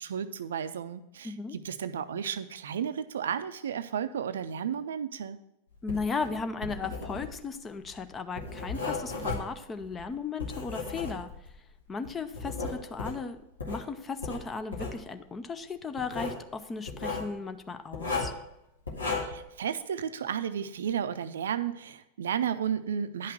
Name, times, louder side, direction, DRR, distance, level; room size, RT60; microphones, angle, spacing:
voice 1, 0.0-5.4 19.2-23.3, right 8 dB, 65° right, 12 dB, 0.5 m, -33 dB
voice 2, 1.2-1.6 5.8-11.3 11.9-13.4 13.7-18.3, left 4 dB, 20° left, 10 dB, 0.7 m, -36 dB
Writing, 5.8-11.6 12.0-13.8 14.2-15.0 16.0-16.4 16.9-17.3 17.9-18.4 18.9-19.5, left 3 dB, 75° left, 1.9 m, -35 dB
10.0 x 5.8 x 6.0 m, 0.86 s
figure-of-eight pair, 90°, 0 cm